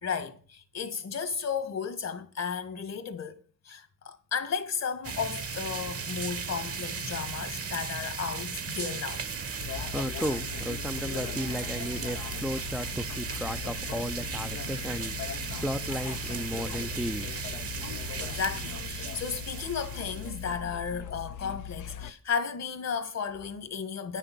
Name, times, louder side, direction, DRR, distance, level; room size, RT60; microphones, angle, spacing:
voice 1, 0.0-3.4 3.6-9.2 18.2-24.2, left 6 dB, 60° left, 1.5 m, -34 dB
sound 1, 5.0-20.6, right 5 dB, 50° right, 1.2 m, -36 dB
sound 2, 9.6-22.1, left 8 dB, 80° left, 0.7 m, -40 dB
voice 2, 9.7-17.3, equal, 5° right, 0.5 m, -34 dB
9.8 x 6.6 x 6.1 m
cardioid pair, 75°, 30 cm